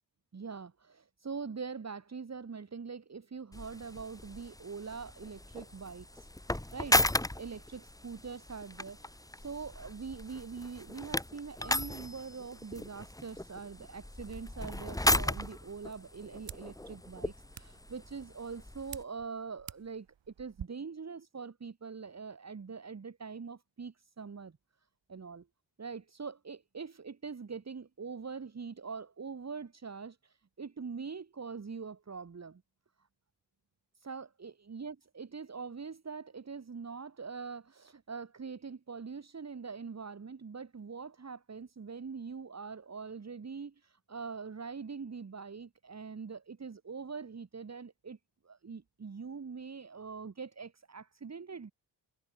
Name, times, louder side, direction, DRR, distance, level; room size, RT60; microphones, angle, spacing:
voice 1, 0.3-6.3 6.7-7.0 7.4-24.6 25.1-25.4 25.8-32.6 34.0-48.2 48.4-51.7, right 5 dB, 35° right, 3.3 m, -43 dB
sound 1, 3.5-19.0, left 1 dB, 10° left, 2.9 m, -36 dB
sound 2, 15.1-20.7, right 9 dB, 85° right, 3.6 m, -51 dB
wide cardioid pair, 145°, 44 cm